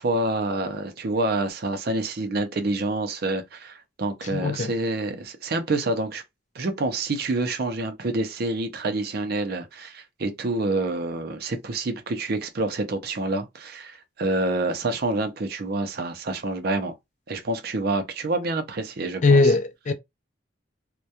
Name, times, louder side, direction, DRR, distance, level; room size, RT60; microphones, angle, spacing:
voice 1, 0.0-6.2 6.5-16.9 17.3-19.5, right 2 dB, 55° right, 0.5 m, -27 dB
voice 2, 4.3-4.7 19.2-19.9, left 3 dB, 40° left, 0.4 m, -19 dB
2.2 x 2.2 x 2.7 m
head